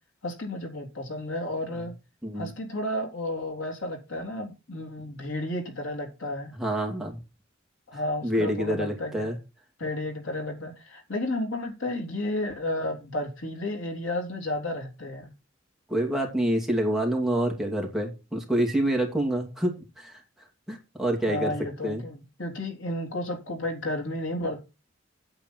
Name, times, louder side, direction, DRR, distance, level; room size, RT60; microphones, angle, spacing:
voice 1, 0.2-1.9 2.4-6.5 7.9-9.3 9.8-15.3 21.3-24.6, left 1 dB, 85° left, 2 dB, 3.4 m, -32 dB
voice 2, 6.6-7.2 8.2-9.4 15.9-20.1 20.7-21.5 21.8-22.0, right 1 dB, ahead, 0 dB, 2.6 m, -27 dB
8.8 x 8.7 x 4.6 m, 0.28 s
head